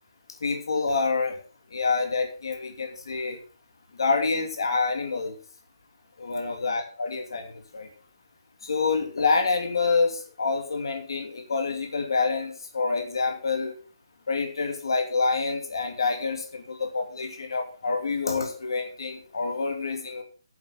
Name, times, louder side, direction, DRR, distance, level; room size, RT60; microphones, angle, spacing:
voice 1, 0.4-1.4 1.7-3.4 4.0-5.4 6.2-7.9 8.6-13.7 14.3-20.2, left 4 dB, 75° left, 3 dB, 2.7 m, -27 dB
10.5 x 7.7 x 6.3 m, 0.40 s
hypercardioid pair, 150°, 2 cm